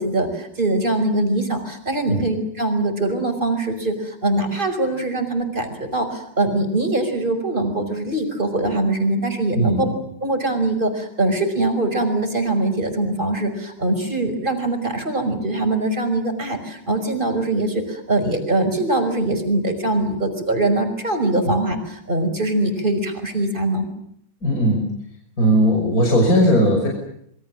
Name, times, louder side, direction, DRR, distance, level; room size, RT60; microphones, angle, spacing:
voice 1, 0.0-9.9 10.2-23.9, right 2 dB, 20° right, 6 dB, 5.8 m, -22 dB
voice 2, 9.5-9.9 21.4-21.5 24.4-24.9 25.4-26.9, equal, 40° left, 1 dB, 6.5 m, -18 dB
28.0 x 24.0 x 7.5 m, 0.71 s
omnidirectional pair, 2.4 m